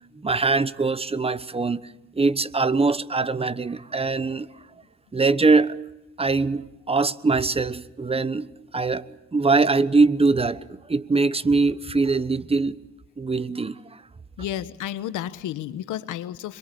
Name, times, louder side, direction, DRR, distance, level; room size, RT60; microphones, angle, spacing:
voice 1, 0.1-4.5 5.1-5.8 6.2-12.8 13.2-14.0, right 3 dB, 20° right, 1.0 m, -22 dB
voice 2, 14.4-16.6, left 12 dB, 85° left, 1.3 m, -32 dB
26.0 x 22.5 x 7.0 m
cardioid pair, 90°, 30 cm